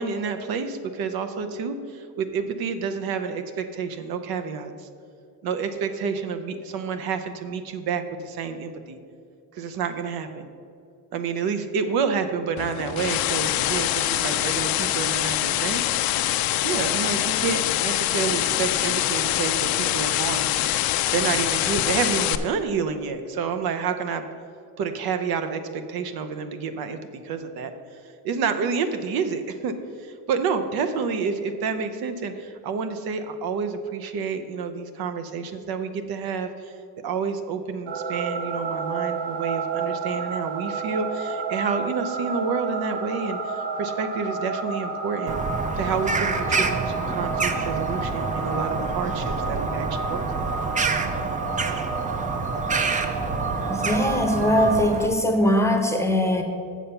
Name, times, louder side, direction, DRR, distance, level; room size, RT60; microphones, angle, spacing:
voice 1, 0.0-1.8 2.2-4.7 5.4-9.0 9.6-10.5 11.1-15.8 16.6-20.5 21.1-24.2 24.8-27.0 27.2-27.7 28.2-29.7 30.3-36.5 37.0-43.4 43.8-45.4 45.8-50.4, right 5 dB, 65° right, 8 dB, 0.8 m, -29 dB
sound 1, 12.6-22.4, left 13 dB, 65° left, 0.5 m, -24 dB
sound 2, 37.9-54.8, right 4 dB, 85° right, 1.3 m, -30 dB
Bird vocalization bird call bird song, 45.3-55.1, right 4 dB, 20° right, 0.5 m, -28 dB
voice 2, 53.7-56.4, equal, 5° left, 4 dB, 0.8 m, -21 dB
7.1 x 6.9 x 5.7 m, 2.5 s
cardioid pair, 115°, 39 cm